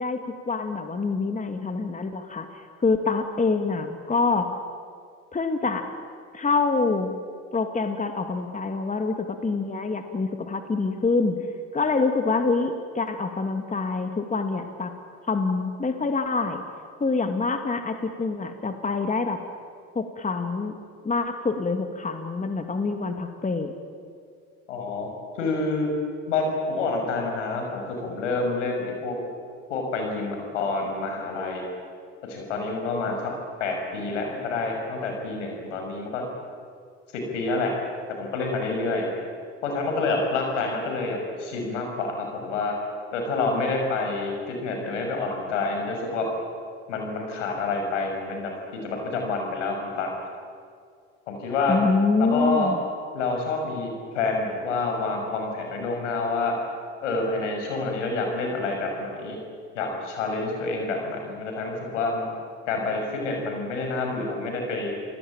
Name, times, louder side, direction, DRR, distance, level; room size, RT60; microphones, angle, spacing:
voice 1, 0.0-4.5 5.3-5.9 6.3-7.1 7.5-11.4 11.7-14.9 15.3-16.6 17.0-19.4 19.9-20.7 21.0-23.7 51.7-52.8, left 4 dB, 20° left, 6 dB, 2.4 m, -26 dB
voice 2, 24.7-25.1 25.3-25.9 26.3-29.2 29.7-31.7 32.2-33.3 33.6-36.3 37.1-37.7 38.1-39.1 39.6-42.8 43.1-46.3 46.9-50.1 51.3-51.8 52.2-52.7 53.1-56.6 57.0-59.4 59.7-62.3 62.7-64.9, left 3 dB, 85° left, 2 dB, 6.3 m, -28 dB
29.0 x 18.5 x 9.0 m, 2.2 s
hypercardioid pair, 70°, 35 cm